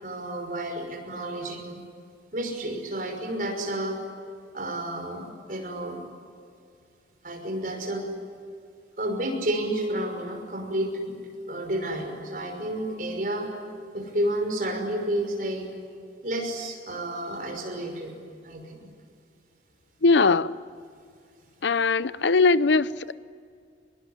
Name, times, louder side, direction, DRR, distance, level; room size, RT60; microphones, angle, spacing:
voice 1, 0.0-1.8 2.3-4.0 4.5-6.0 7.2-8.0 9.0-11.2 11.5-13.5 13.9-15.7 16.2-18.1 18.4-18.9, right 1 dB, 50° right, 5.9 m, -30 dB
voice 2, 20.0-20.5 21.6-23.1, left 4 dB, 85° left, 0.7 m, -20 dB
24.0 x 22.0 x 9.9 m
head